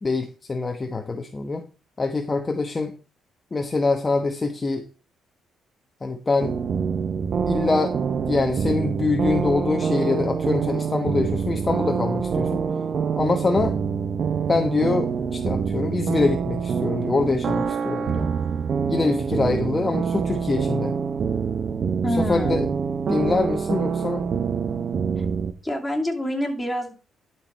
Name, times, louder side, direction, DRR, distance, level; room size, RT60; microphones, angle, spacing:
voice 1, 0.0-1.7 2.0-2.9 3.5-4.8 6.0-6.6 7.5-7.9 8.3-12.6 13.2-13.8 14.5-18.3 18.9-20.9 22.1-22.6 23.1-24.3, left 3 dB, 25° left, 5 dB, 1.0 m, -24 dB
sound 1, 6.4-25.5, right 6 dB, 55° right, 0.8 m, -25 dB
voice 2, 22.0-22.6 25.2-25.3 25.6-26.9, equal, 5° left, 0 dB, 2.7 m, -27 dB
12.0 x 4.7 x 4.5 m, 0.34 s
cardioid pair, 90°, 0 cm